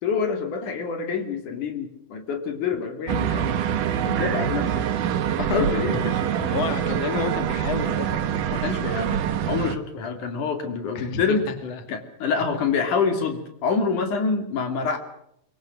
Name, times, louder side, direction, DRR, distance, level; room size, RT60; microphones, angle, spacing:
voice 1, 0.0-3.6 4.0-4.9 5.4-6.1 6.5-6.6 8.5-11.5 11.9-15.0, left 5 dB, 70° left, 7 dB, 4.0 m, -26 dB
sound 1, 3.1-9.8, right 9 dB, 80° right, 3.0 m, -25 dB
voice 2, 6.4-8.3 10.9-11.8, left 6 dB, 55° left, 8 dB, 3.5 m, -30 dB
23.5 x 23.5 x 6.5 m, 0.73 s
omnidirectional pair, 3.6 m